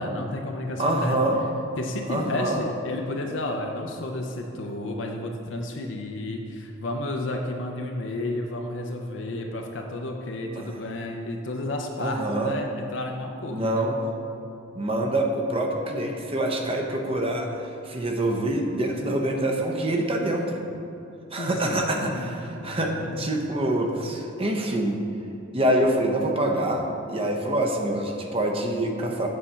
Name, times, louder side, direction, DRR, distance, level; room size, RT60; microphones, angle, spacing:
voice 1, 0.0-1.2 1.8-13.9 21.4-23.2, left 1 dB, 70° left, 2 dB, 0.6 m, -32 dB
voice 2, 0.8-1.4 2.1-2.6 10.6-10.8 12.0-12.6 13.5-14.0 14.7-20.7 21.3-25.0 25.5-29.3, right 1 dB, 30° right, 2 dB, 0.7 m, -26 dB
8.3 x 4.3 x 5.6 m, 2.7 s
head